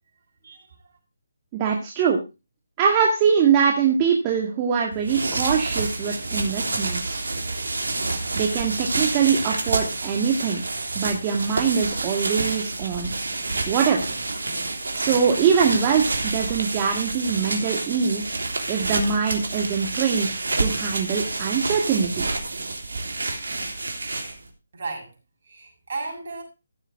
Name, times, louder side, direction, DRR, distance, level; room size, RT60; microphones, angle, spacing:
voice 1, 1.5-2.2 2.8-7.2 8.4-10.6 11.0-13.1 13.6-14.2 15.0-18.3 18.7-20.3 20.6-22.3, right 6 dB, 25° right, 0 dB, 2.0 m, -23 dB
sound 1, 4.9-24.5, right 3 dB, 75° right, 3.4 m, -28 dB
voice 2, 24.7-25.1 25.5-26.4, right 3 dB, 55° right, 1 dB, 6.7 m, -34 dB
15.0 x 7.3 x 4.5 m, 0.28 s
figure-of-eight pair, 155°, 0 cm